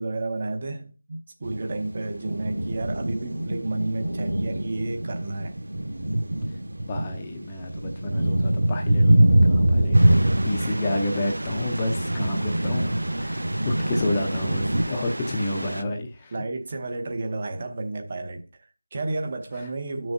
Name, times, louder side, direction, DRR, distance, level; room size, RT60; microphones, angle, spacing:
voice 1, 0.0-5.6 10.6-10.8 16.3-20.1, right 2 dB, 25° right, 0.9 m, -31 dB
sound 1, 1.4-14.8, right 1 dB, 55° right, 1.9 m, -24 dB
voice 2, 6.9-10.2 10.4-16.3 19.6-19.7, left 2 dB, 15° left, 0.7 m, -30 dB
sound 2, 9.9-15.8, right 1 dB, 75° right, 0.8 m, -33 dB
13.0 x 6.2 x 2.6 m
figure-of-eight pair, 175°, 0 cm